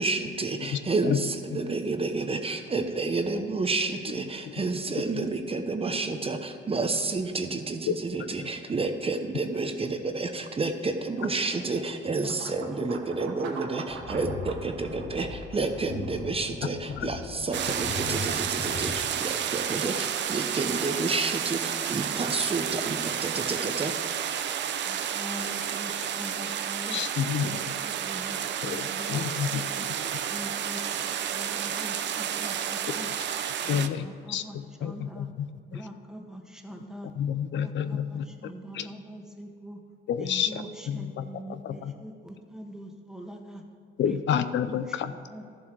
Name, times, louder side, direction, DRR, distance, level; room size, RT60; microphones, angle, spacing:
voice 1, 0.0-24.0, right 3 dB, 30° right, 6 dB, 0.8 m, -30 dB
voice 2, 0.6-1.2 1.5-1.6 7.9-8.5 16.6-17.1 26.9-27.6 28.6-29.6 32.9-33.1 33.7-35.5 35.7-35.8 37.2-38.3 38.7-38.9 40.1-40.6 40.9-41.2 41.5-41.9 44.0-45.1, left 8 dB, 70° left, 11 dB, 0.5 m, -30 dB
sound 1, 10.1-24.0, right 5 dB, 85° right, 1.3 m, -46 dB
sound 2, 13.9-19.1, left 4 dB, 45° left, 0.9 m, -39 dB
sound 3, 17.5-33.9, right 9 dB, 65° right, 0.6 m, -31 dB
voice 3, 24.8-27.0 27.4-29.9 30.3-33.1 33.6-35.3 35.7-37.1 37.5-39.8 40.2-43.6 44.0-45.4, right 1 dB, 5° right, 3 dB, 1.5 m, -43 dB
13.0 x 7.4 x 4.6 m, 2.4 s
cardioid pair, 90°, 20 cm